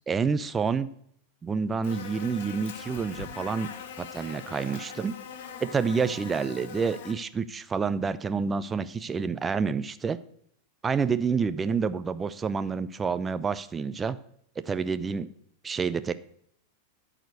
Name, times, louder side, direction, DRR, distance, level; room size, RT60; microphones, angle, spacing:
voice 1, 0.1-0.9 1.4-3.7 4.0-5.2 5.6-10.2 10.8-14.2 14.7-15.3 15.6-16.1, right 5 dB, 15° right, 13 dB, 0.5 m, -28 dB
Buzz, 1.8-7.1, left 7 dB, 55° left, 1.2 m, -42 dB
13.0 x 5.0 x 6.4 m, 0.69 s
figure-of-eight pair, 90°, 0 cm